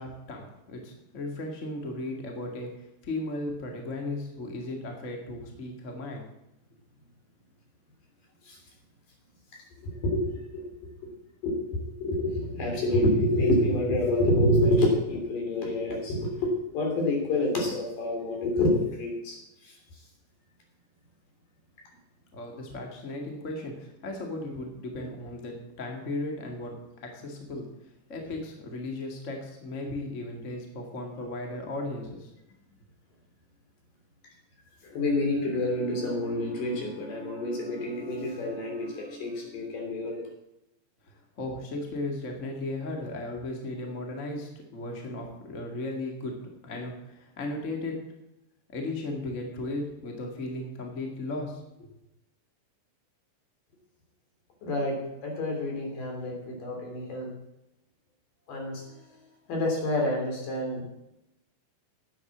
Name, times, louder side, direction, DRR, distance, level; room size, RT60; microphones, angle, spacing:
voice 1, 0.0-2.7 3.0-6.3 22.3-26.8 27.0-27.7 28.1-32.3 41.1-46.4 46.6-48.0 48.7-51.9, left 2 dB, 25° left, 1 dB, 1.8 m, -36 dB
voice 2, 9.8-10.7 11.4-11.6 12.0-18.7 19.0-19.4 19.6-19.7 34.8-40.3 54.6-54.9 55.2-57.3 58.5-58.8 59.5-60.9, left 1 dB, 70° left, 0 dB, 4.8 m, -27 dB
11.0 x 8.4 x 7.3 m, 0.90 s
omnidirectional pair, 4.0 m